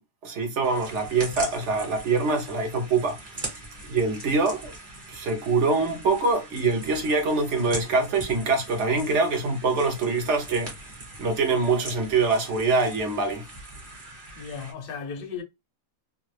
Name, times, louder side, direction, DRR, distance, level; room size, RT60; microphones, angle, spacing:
voice 1, 0.2-3.2 3.9-4.7 5.1-10.7 11.2-13.4, right 3 dB, 60° right, 1.1 m, -24 dB
sound 1, 0.6-14.7, right 2 dB, 35° right, 1.3 m, -41 dB
voice 2, 14.4-15.4, left 6 dB, 55° left, 0.6 m, -35 dB
2.8 x 2.4 x 3.2 m
omnidirectional pair, 1.5 m